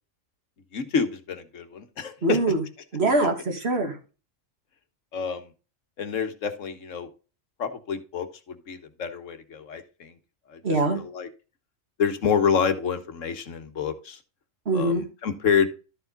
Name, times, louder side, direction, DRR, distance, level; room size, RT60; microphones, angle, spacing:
voice 1, 0.7-2.4 5.1-5.5 6.0-7.1 7.6-10.1 10.5-11.3 12.0-14.2 14.7-15.7, left 6 dB, 75° left, 8 dB, 1.5 m, -28 dB
voice 2, 2.2-2.6 2.9-4.0 10.6-11.0 14.7-15.0, right 2 dB, 50° right, 4 dB, 2.1 m, -23 dB
12.5 x 4.8 x 3.9 m, 0.33 s
omnidirectional pair, 1.3 m